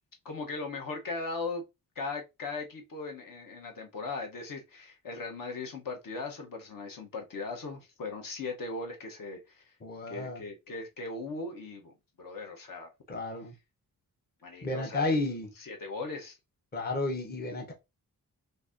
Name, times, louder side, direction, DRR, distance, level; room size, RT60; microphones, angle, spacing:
voice 1, 0.2-1.6 2.0-9.6 10.1-12.9 14.4-15.0 15.6-16.4, left 3 dB, 65° left, 0.9 m, -38 dB
voice 2, 9.8-10.4 13.1-13.5 14.6-15.5 16.7-17.7, left 2 dB, 25° left, 0.7 m, -32 dB
4.0 x 2.6 x 2.5 m
wide cardioid pair, 155°, 36 cm